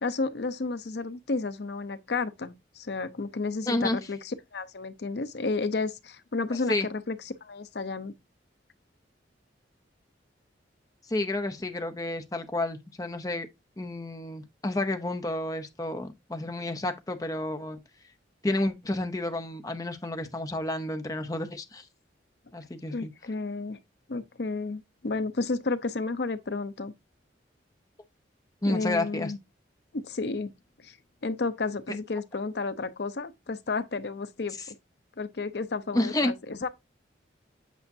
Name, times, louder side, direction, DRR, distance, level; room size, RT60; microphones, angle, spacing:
voice 1, 0.0-8.1 22.9-23.8 24.1-26.9 28.6-29.4 29.9-30.5 30.8-31.0 31.2-34.6 35.2-36.7, left 3 dB, 60° left, 0.6 m, -32 dB
voice 2, 3.7-4.0 6.7-6.9 11.1-13.5 13.8-17.8 18.4-21.9 22.5-23.1 28.6-29.3 35.9-36.3, left 1 dB, 20° left, 0.7 m, -30 dB
8.3 x 5.7 x 2.7 m
head